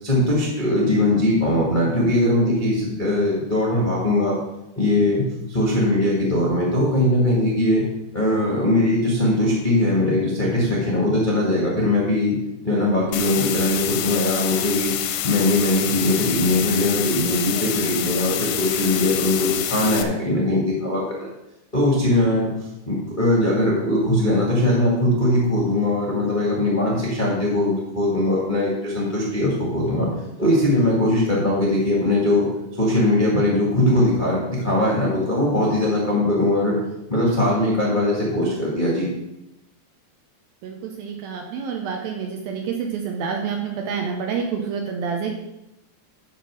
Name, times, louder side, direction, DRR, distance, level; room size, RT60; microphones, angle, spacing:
voice 1, 0.0-4.4 4.7-7.8 8.1-12.4 12.6-14.9 15.2-21.3 21.7-22.5 22.8-30.1 30.4-32.5 32.8-36.8 37.1-39.1, left 1 dB, 40° left, -5 dB, 0.6 m, -20 dB
sound 1, 13.1-20.0, left 11 dB, 80° left, 2.4 m, -27 dB
voice 2, 40.6-45.3, right 6 dB, 75° right, 2 dB, 2.3 m, -28 dB
11.0 x 4.4 x 6.4 m, 0.90 s
omnidirectional pair, 5.0 m